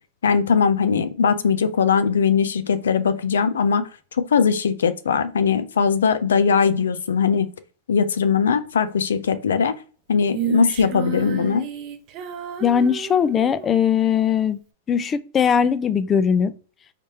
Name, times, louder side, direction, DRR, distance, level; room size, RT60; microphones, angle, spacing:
voice 1, 0.2-7.5 7.9-9.7 10.1-11.7, left 6 dB, 90° left, 0.5 m, -20 dB
Female singing, 10.3-13.8, right 11 dB, 40° right, 0.7 m, -32 dB
voice 2, 12.6-14.6 14.9-16.5, left 7 dB, 25° left, 0.4 m, -20 dB
3.2 x 3.2 x 2.9 m
hypercardioid pair, 125°, 0 cm